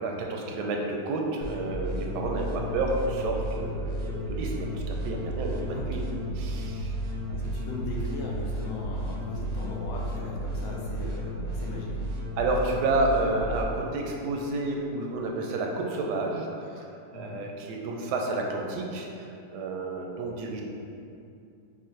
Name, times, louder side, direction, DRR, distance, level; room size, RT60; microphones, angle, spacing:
voice 1, 0.0-6.0 6.4-6.9 12.4-16.9 17.1-20.6, right 2 dB, 85° right, 1 dB, 1.2 m, -30 dB
sound 1, 1.4-13.6, equal, 70° right, 0.8 m, -33 dB
voice 2, 5.7-6.1 7.3-12.1 17.1-17.4, left 2 dB, 70° left, -3 dB, 1.0 m, -39 dB
5.4 x 2.1 x 3.1 m, 2.6 s
omnidirectional pair, 1.7 m